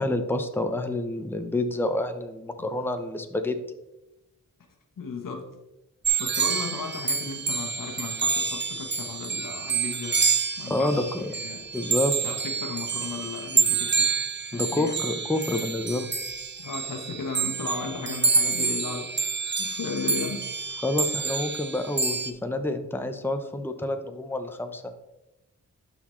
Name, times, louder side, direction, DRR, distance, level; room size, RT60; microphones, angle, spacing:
voice 1, 0.0-3.6 10.7-11.3 11.7-12.1 14.5-16.1 20.8-24.9, left 2 dB, 5° left, 7 dB, 0.7 m, -28 dB
voice 2, 5.0-5.5 6.2-10.2 10.6-11.7 12.2-14.1 14.4-14.9 16.6-19.1 19.6-20.8, left 4 dB, 75° left, 3 dB, 1.3 m, -35 dB
sound 1, 6.0-22.3, right 5 dB, 35° right, 0.7 m, -28 dB
12.0 x 4.1 x 3.2 m, 0.93 s
cardioid pair, 60°, 33 cm